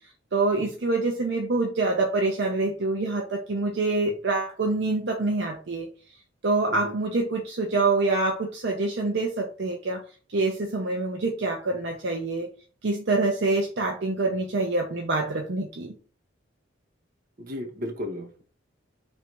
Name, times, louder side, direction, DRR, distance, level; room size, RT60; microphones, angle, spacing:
voice 1, 0.3-5.9 6.4-10.0 10.3-12.5 12.8-15.9, right 3 dB, 65° right, 2 dB, 0.6 m, -26 dB
voice 2, 17.4-18.4, left 1 dB, 50° right, 3 dB, 1.0 m, -34 dB
3.3 x 2.6 x 4.5 m, 0.38 s
head